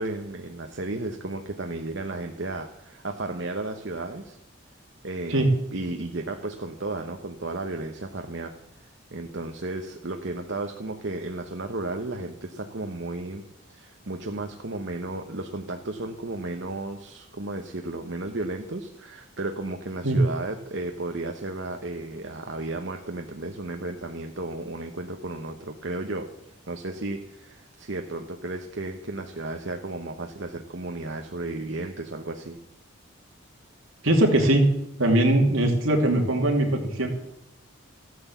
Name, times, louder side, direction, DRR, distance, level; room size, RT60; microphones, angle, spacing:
voice 1, 0.0-4.4 5.0-8.6 9.1-13.4 13.7-26.3 26.7-32.6, right 2 dB, 60° right, 4 dB, 1.0 m, -34 dB
voice 2, 34.0-34.6 35.0-37.1, right 1 dB, 75° right, 2 dB, 2.7 m, -21 dB
14.5 x 9.5 x 7.2 m, 0.80 s
head